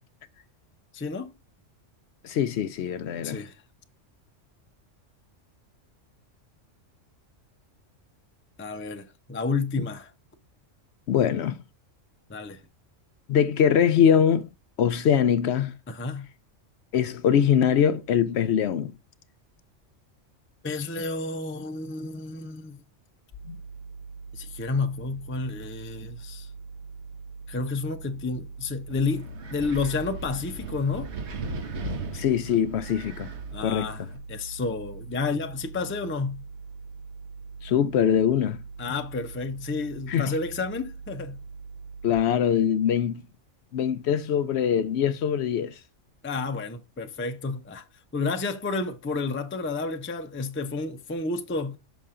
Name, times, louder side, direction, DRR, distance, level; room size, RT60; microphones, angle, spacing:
voice 1, 0.9-1.3 3.2-3.5 8.6-10.1 12.3-12.6 15.9-16.3 20.6-22.8 24.3-26.5 27.5-31.1 33.5-36.4 38.8-41.4 46.2-47.8 48.1-51.8, left 4 dB, 15° left, 0.4 m, -30 dB
voice 2, 2.2-3.4 11.1-11.6 13.3-14.5 14.8-15.7 16.9-18.9 23.5-23.6 32.1-33.3 33.6-33.9 37.6-38.6 40.1-40.3 42.0-43.2 43.7-45.7, left 8 dB, 65° left, 0.8 m, -23 dB
sound 1, 23.3-42.2, right 4 dB, 45° right, 3.4 m, -42 dB
Wind, 28.9-34.2, right 2 dB, 65° right, 1.2 m, -38 dB
6.0 x 5.6 x 3.7 m
omnidirectional pair, 1.3 m